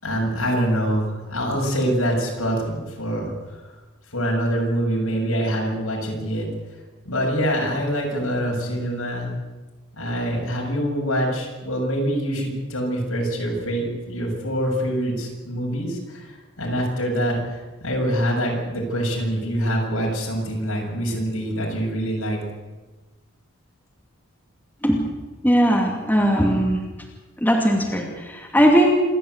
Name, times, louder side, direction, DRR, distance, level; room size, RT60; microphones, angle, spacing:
voice 1, 0.0-3.6 4.1-6.5 7.1-9.3 9.9-22.4, equal, 75° left, -1 dB, 7.1 m, -25 dB
voice 2, 25.4-26.8 27.4-28.9, equal, 10° left, 0 dB, 2.6 m, -19 dB
27.0 x 13.0 x 8.1 m, 1.2 s
head